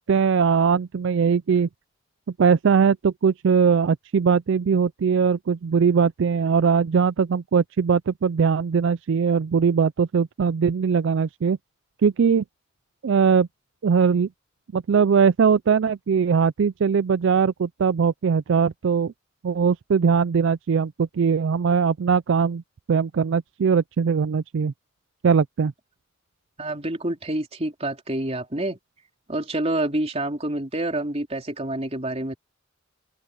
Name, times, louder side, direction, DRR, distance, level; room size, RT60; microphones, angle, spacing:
voice 1, 0.1-1.7 2.4-11.6 12.0-12.4 13.0-13.5 13.8-14.3 14.7-19.1 19.4-22.6 22.9-24.7 25.2-25.7, right 6 dB, 60° right, 0.4 m, -20 dB
voice 2, 26.6-28.8 29.3-32.4, right 1 dB, 30° right, 3.3 m, -27 dB
open air
head